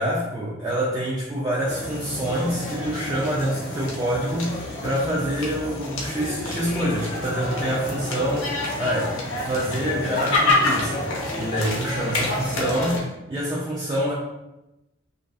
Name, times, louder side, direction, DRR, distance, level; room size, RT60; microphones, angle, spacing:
voice 1, 0.0-11.1 11.4-14.1, equal, 20° right, -7 dB, 0.3 m, -26 dB
sound 1, 1.7-13.0, left 2 dB, 85° left, 0.6 m, -28 dB
2.5 x 2.3 x 2.3 m, 0.96 s
head